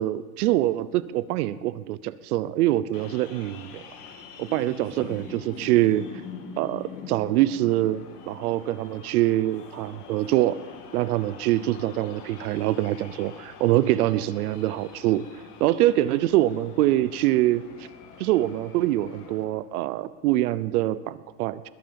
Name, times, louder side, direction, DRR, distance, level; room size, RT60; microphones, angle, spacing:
voice 1, 0.0-3.8 4.4-6.0 6.6-10.6 10.9-15.2 15.6-17.6 18.2-21.7, right 15 dB, 70° right, 16 dB, 0.8 m, -24 dB
sound 1, 2.9-19.4, left 5 dB, 85° left, 3.2 m, -44 dB
21.0 x 9.3 x 7.0 m, 1.5 s
supercardioid pair, 160°, 46 cm